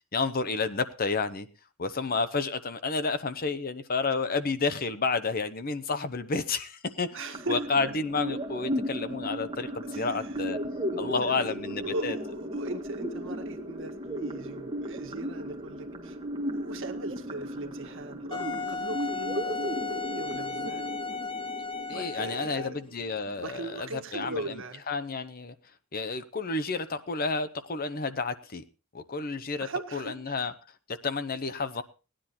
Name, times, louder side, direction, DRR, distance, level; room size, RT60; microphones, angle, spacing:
voice 1, 0.1-1.5 1.8-10.6 11.0-12.2 21.9-25.5 25.9-28.6 28.9-30.5 30.9-31.8, left 4 dB, 45° left, 11 dB, 0.9 m, -31 dB
voice 2, 7.1-7.9 9.8-10.4 10.9-20.9 21.9-22.8 23.4-24.8 29.6-30.3, right 2 dB, 60° right, 6 dB, 1.7 m, -39 dB
sound 1, 7.3-23.3, equal, 20° right, 1.2 m, -36 dB
Wind instrument woodwind instrument, 18.3-22.8, left 4 dB, 25° left, 0.6 m, -35 dB
17.0 x 10.0 x 4.3 m, 0.32 s
head